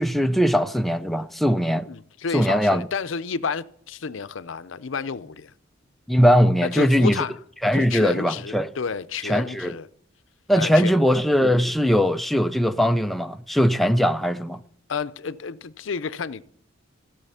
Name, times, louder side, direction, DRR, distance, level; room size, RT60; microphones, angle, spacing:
voice 1, 0.0-1.9 2.3-2.9 6.1-7.2 7.6-8.7 9.2-9.7 10.5-14.6, equal, ahead, 0.4 m, -20 dB
voice 2, 1.9-5.5 6.6-7.3 7.7-9.9 10.5-11.0 14.9-16.4, left 5 dB, 75° left, 0.6 m, -30 dB
15.5 x 6.7 x 5.6 m
head